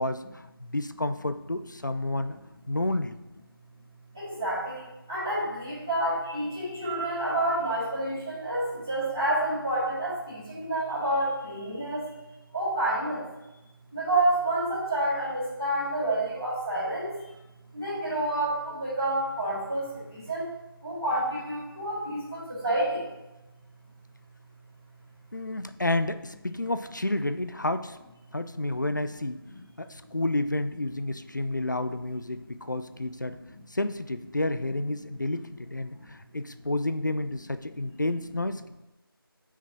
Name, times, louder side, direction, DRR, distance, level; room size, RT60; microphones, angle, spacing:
voice 1, 0.0-2.4 2.7-3.2 25.3-28.0 28.3-29.5 29.8-33.4 33.7-38.7, left 2 dB, 50° left, 11 dB, 0.5 m, -30 dB
voice 2, 4.1-12.0 12.5-13.2 13.9-17.3 17.7-20.5 20.8-23.1, right 1 dB, 10° right, -19 dB, 2.2 m, -29 dB
8.3 x 5.9 x 4.6 m, 1.0 s
figure-of-eight pair, 180°, 13 cm